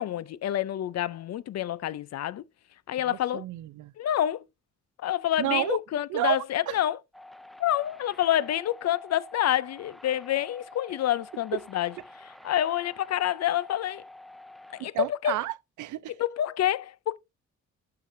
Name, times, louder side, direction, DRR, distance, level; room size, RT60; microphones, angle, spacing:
voice 1, 0.0-2.4 2.9-3.4 4.0-4.4 5.0-7.0 7.6-11.9 12.4-14.0 14.8-15.4 16.2-17.2, left 12 dB, 60° left, 0.6 m, -28 dB
voice 2, 3.1-3.9 5.4-5.8 6.1-6.8 14.8-16.1, right 15 dB, 75° right, 0.6 m, -31 dB
sound 1, 7.1-14.8, left 1 dB, ahead, 0.5 m, -49 dB
12.0 x 5.0 x 2.7 m
cardioid pair, 90°, 30 cm